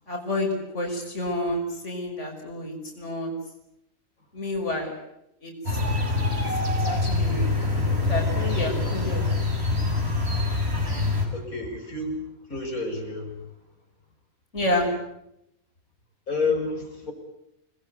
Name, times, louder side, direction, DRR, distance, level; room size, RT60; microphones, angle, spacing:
voice 1, 0.1-3.3 4.3-4.9 5.4-5.8 6.8-7.5 8.1-9.5 14.5-14.9, left 1 dB, 55° left, 1 dB, 6.1 m, -29 dB
sound 1, 5.7-11.3, left 2 dB, 45° right, 6.9 m, -25 dB
voice 2, 11.3-12.2 12.5-13.4 16.3-17.1, left 3 dB, 85° left, 2 dB, 7.1 m, -29 dB
29.5 x 21.0 x 9.4 m, 0.82 s
omnidirectional pair, 1.5 m